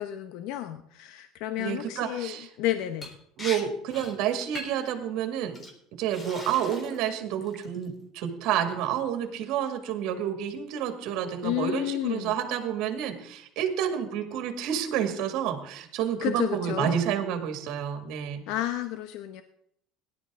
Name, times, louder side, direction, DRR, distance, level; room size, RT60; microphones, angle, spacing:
voice 1, 0.0-3.1 11.4-12.3 16.2-17.0 18.5-19.4, left 13 dB, 70° left, 9 dB, 0.8 m, -31 dB
voice 2, 1.6-2.5 3.4-5.6 6.0-18.4, right 9 dB, 65° right, 6 dB, 2.0 m, -29 dB
Liquid, 3.0-3.1 3.4-3.6 3.9-4.1 4.6-4.9 5.5-5.7 6.1-7.0 7.4-7.8, left 1 dB, 25° left, 3.7 m, -39 dB
17.5 x 11.0 x 3.7 m, 0.70 s
supercardioid pair, 110°, 0 cm